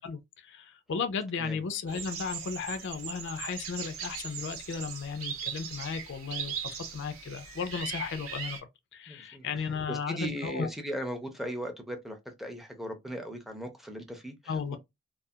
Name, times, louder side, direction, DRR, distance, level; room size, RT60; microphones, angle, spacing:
voice 1, 0.0-6.5 6.9-8.6 8.9-10.7 14.5-14.8, left 5 dB, 60° left, 0.4 m, -35 dB
sound 1, 1.9-8.6, right 7 dB, 90° right, 0.8 m, -39 dB
voice 2, 9.1-14.8, equal, ahead, 0.5 m, -38 dB
2.4 x 2.3 x 2.6 m
head